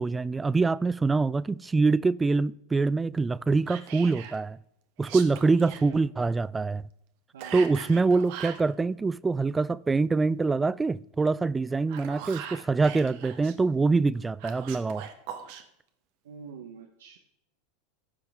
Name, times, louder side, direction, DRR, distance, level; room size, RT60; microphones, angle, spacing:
voice 1, 0.0-4.6 5.0-6.8 7.5-15.1, right 3 dB, 15° right, 0.3 m, -25 dB
Whispering, 3.7-4.4 5.0-5.8 7.4-8.7 11.7-13.6 14.4-15.6, right 9 dB, 60° right, 1.2 m, -41 dB
voice 2, 7.3-7.7 12.0-12.3 16.2-17.2, right 6 dB, 80° right, 0.8 m, -46 dB
14.5 x 5.8 x 3.6 m
hypercardioid pair, 95°, 0 cm